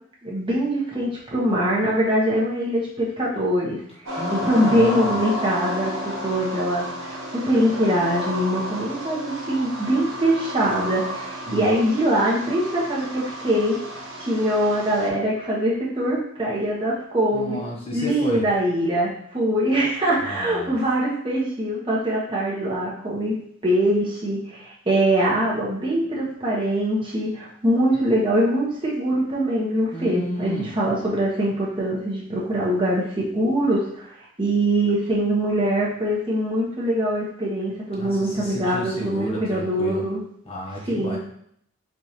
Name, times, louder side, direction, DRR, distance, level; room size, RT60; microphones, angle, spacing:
voice 1, 0.2-3.8 4.3-13.8 14.2-17.6 17.9-23.4 23.6-34.1 34.4-40.2 40.9-41.2, right 1 dB, 25° right, -6 dB, 1.1 m, -23 dB
sound 1, 4.1-15.1, equal, 85° right, 0.9 m, -32 dB
voice 2, 4.2-5.1 11.5-11.7 17.3-18.4 20.2-20.7 29.9-30.8 38.0-40.0 40.5-41.2, equal, 30° left, -3 dB, 0.8 m, -32 dB
4.9 x 2.5 x 2.9 m, 0.66 s
head